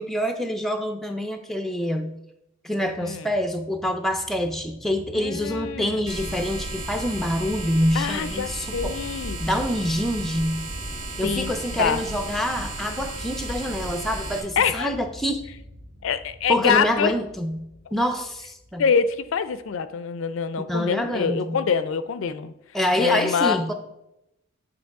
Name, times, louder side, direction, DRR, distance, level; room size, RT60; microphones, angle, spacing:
voice 1, 0.0-2.2 2.6-9.0 9.4-10.7 11.2-15.4 16.5-18.8 20.7-21.6 22.7-23.7, equal, ahead, 6 dB, 0.4 m, -26 dB
sound 1, 2.8-19.8, equal, 45° right, 0.9 m, -43 dB
voice 2, 3.0-3.3 5.1-6.0 7.9-9.4 11.2-12.0 14.6-14.9 16.0-17.1 18.8-22.5 23.0-23.7, left 6 dB, 65° left, 13 dB, 0.4 m, -25 dB
sound 2, 6.1-14.4, right 2 dB, 65° right, 1.7 m, -34 dB
8.8 x 3.0 x 4.6 m, 0.84 s
head